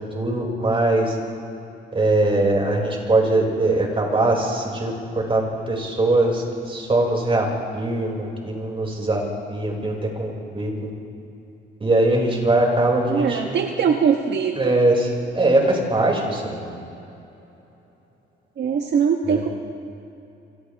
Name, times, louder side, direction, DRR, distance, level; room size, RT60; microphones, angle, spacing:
voice 1, 0.1-1.1 1.9-4.9 5.3-10.9 11.8-13.6 14.6-15.0 15.3-16.8 19.3-19.4, right 2 dB, 25° right, -1 dB, 6.2 m, -21 dB
voice 2, 13.1-14.8 18.6-19.5, right 7 dB, 60° right, 2 dB, 1.5 m, -21 dB
29.0 x 26.5 x 3.6 m, 2.9 s
cardioid pair, 90°, 20 cm